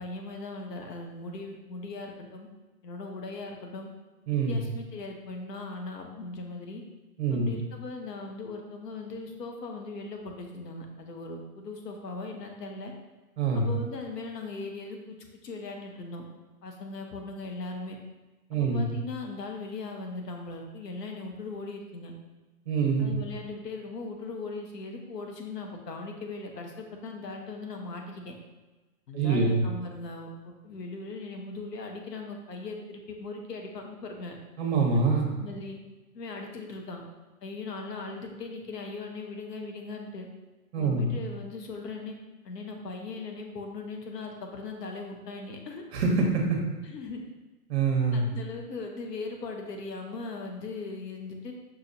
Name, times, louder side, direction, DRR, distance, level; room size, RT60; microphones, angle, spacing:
voice 1, 0.0-2.5 2.8-3.9 4.3-6.8 7.3-12.9 13.5-15.2 15.4-16.2 16.6-18.0 18.5-22.1 23.0-28.3 29.1-34.4 35.4-35.8 36.1-37.0 37.4-40.3 40.8-42.1 42.4-45.8 46.8-47.3 48.1-51.5, left 3 dB, 85° left, 3 dB, 1.0 m, -39 dB
voice 2, 4.3-4.6 7.2-7.5 13.4-13.7 18.5-18.9 22.7-23.1 29.1-29.6 34.6-35.3 40.7-41.1 45.9-46.6 47.7-48.3, right 4 dB, 40° right, 1 dB, 1.0 m, -25 dB
5.6 x 2.9 x 2.6 m, 1.2 s
hypercardioid pair, 150°, 47 cm